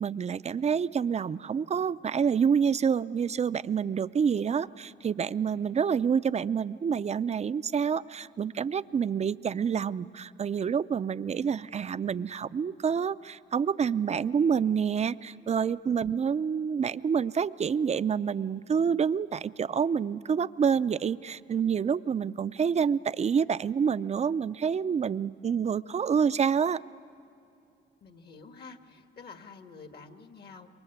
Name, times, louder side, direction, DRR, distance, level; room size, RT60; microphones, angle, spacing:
voice 1, 0.0-26.8, right 7 dB, 35° right, 14 dB, 0.5 m, -27 dB
voice 2, 28.0-30.7, left 4 dB, 55° left, 6 dB, 1.8 m, -48 dB
27.5 x 23.0 x 8.1 m, 2.6 s
cardioid pair, 90°, 20 cm